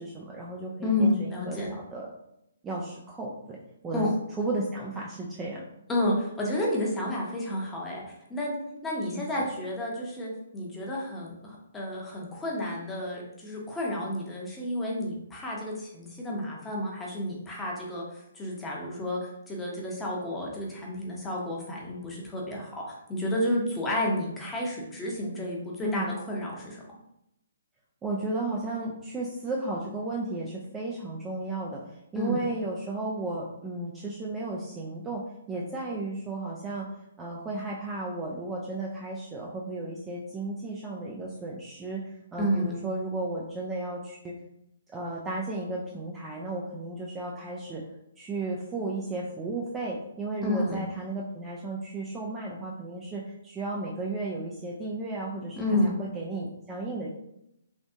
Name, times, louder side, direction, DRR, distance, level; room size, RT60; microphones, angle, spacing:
voice 1, 0.0-1.6 1.9-2.1 2.6-3.6 3.8-4.1 4.4-5.6 9.1-9.2 25.8-26.1 28.0-36.9 37.2-44.3 44.9-47.8 48.2-57.1, right 2 dB, 15° right, -3 dB, 0.4 m, -34 dB
voice 2, 0.8-1.7 3.9-4.1 5.9-8.0 8.3-8.6 8.8-19.2 19.5-22.7 23.1-26.8 32.1-32.4 42.4-42.7 50.4-50.8 55.6-55.9, left 1 dB, 10° left, -3 dB, 0.9 m, -30 dB
3.5 x 2.5 x 2.7 m, 0.81 s
figure-of-eight pair, 135°, 0 cm